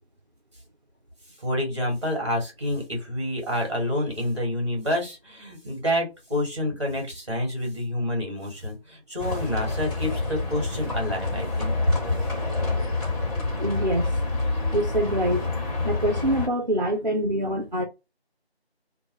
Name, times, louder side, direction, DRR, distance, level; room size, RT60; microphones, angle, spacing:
voice 1, 1.4-11.7, left 1 dB, 30° right, 1.0 m, -28 dB
Livestock farm animals working animals, 9.2-16.5, left 3 dB, 35° left, 1.4 m, -27 dB
voice 2, 13.6-14.1 14.7-15.5 15.8-17.8, right 1 dB, 45° right, 0.4 m, -25 dB
2.3 x 2.2 x 2.9 m
figure-of-eight pair, 175°, 32 cm